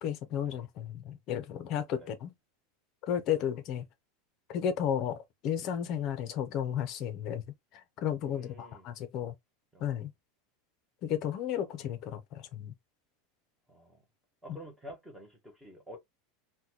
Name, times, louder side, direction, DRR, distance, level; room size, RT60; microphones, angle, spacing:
voice 1, 0.0-2.3 3.0-3.9 4.5-7.4 7.7-9.4 9.8-10.1 11.0-12.7, left 9 dB, 35° left, 0.6 m, -33 dB
voice 2, 8.2-8.9 9.7-10.0 13.7-14.0 14.4-16.0, right 1 dB, 5° right, 0.9 m, -49 dB
3.8 x 2.2 x 2.8 m
supercardioid pair, 175°, 0 cm